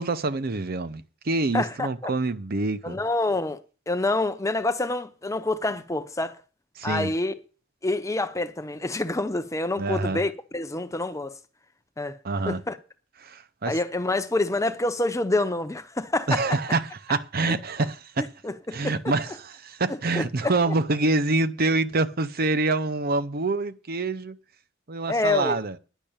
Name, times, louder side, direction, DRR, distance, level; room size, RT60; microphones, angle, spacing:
voice 1, 0.0-3.0 6.8-7.1 9.8-10.2 12.2-12.6 13.2-13.8 16.3-18.3 18.7-24.4 24.9-25.8, right 3 dB, 50° right, 0.8 m, -26 dB
voice 2, 1.5-2.1 2.8-3.6 3.9-6.4 6.8-7.4 7.8-11.4 12.0-12.2 12.5-12.8 13.7-16.4 18.2-19.0 20.1-20.7 25.1-25.6, left 2 dB, 15° left, 0.8 m, -27 dB
10.5 x 6.6 x 8.8 m
head